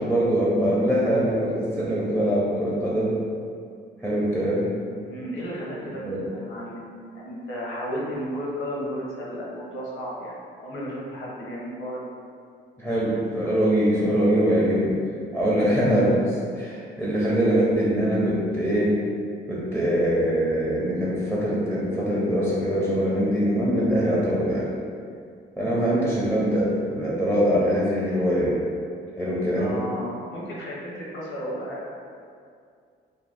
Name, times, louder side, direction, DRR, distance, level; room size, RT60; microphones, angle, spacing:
voice 1, 0.0-3.1 4.0-4.7 6.0-6.2 12.8-15.0 15.3-19.0 19.5-24.7 25.6-28.6 29.2-29.8, equal, ahead, -7 dB, 0.6 m, -23 dB
voice 2, 5.0-12.0 15.5-15.8 29.5-31.8, equal, 80° left, -5 dB, 0.9 m, -34 dB
2.7 x 2.2 x 3.4 m, 2.3 s
cardioid pair, 90°, 20 cm